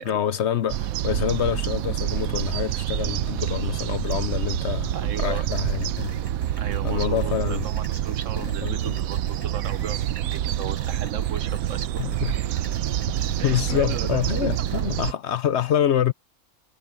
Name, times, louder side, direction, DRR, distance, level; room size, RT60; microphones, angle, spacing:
voice 1, 0.1-6.1 6.8-7.6 8.6-9.0 12.0-12.3 13.4-16.1, left 10 dB, 60° left, 0.8 m, -26 dB
sound 1, 0.7-15.1, right 12 dB, 85° right, 1.1 m, -27 dB
voice 2, 4.9-5.5 6.6-11.9 13.4-14.2 14.7-14.8, right 7 dB, 65° right, 1.3 m, -36 dB
sound 2, 5.2-14.8, equal, 25° left, 7.9 m, -46 dB
omnidirectional pair, 1.4 m